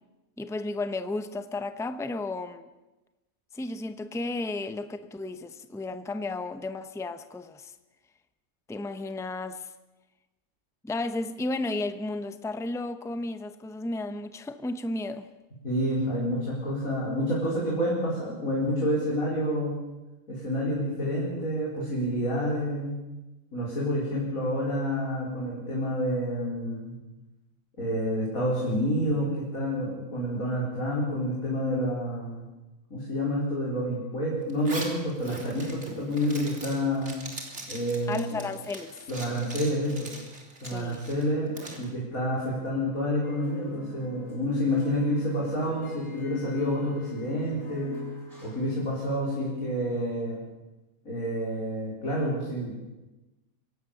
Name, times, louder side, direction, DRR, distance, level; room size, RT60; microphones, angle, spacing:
voice 1, 0.4-2.7 3.5-7.7 8.7-9.7 10.8-15.3 38.1-39.0 40.7-41.0, left 2 dB, 5° left, 10 dB, 0.7 m, -33 dB
voice 2, 15.6-19.8 20.3-23.0 23.5-27.0 27.8-32.5 32.9-37.1 37.7-38.4 39.1-40.1 40.6-48.0 48.4-50.4 51.0-52.7, equal, 75° left, -5 dB, 5.0 m, -28 dB
Zipper (clothing), 34.5-41.9, right 2 dB, 50° right, 3.9 m, -42 dB
sound 1, 43.2-48.7, left 2 dB, 25° left, 8.3 m, -45 dB
25.0 x 17.5 x 7.1 m, 1.1 s
omnidirectional pair, 1.5 m